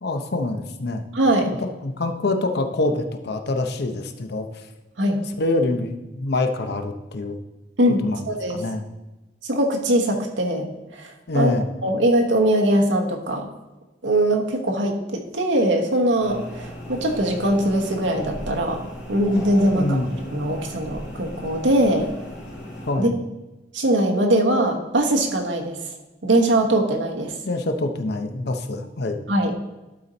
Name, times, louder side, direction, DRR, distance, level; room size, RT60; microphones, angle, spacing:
voice 1, 0.0-1.0 1.5-4.5 5.4-7.4 8.0-8.2 8.5-8.8 11.3-11.7 19.7-20.1 22.9-23.2 27.4-29.2, left 2 dB, 60° left, 6 dB, 0.7 m, -25 dB
voice 2, 1.1-1.5 5.0-5.2 7.8-8.6 9.4-11.5 11.8-13.5 14.0-18.8 19.1-20.0 20.3-22.1 23.0-23.1 23.7-25.8 26.2-27.3 29.3-29.5, right 1 dB, 90° right, 2 dB, 1.2 m, -21 dB
sound 1, 16.2-22.9, equal, 80° left, 2.8 m, -36 dB
11.5 x 4.3 x 4.0 m, 1.1 s
head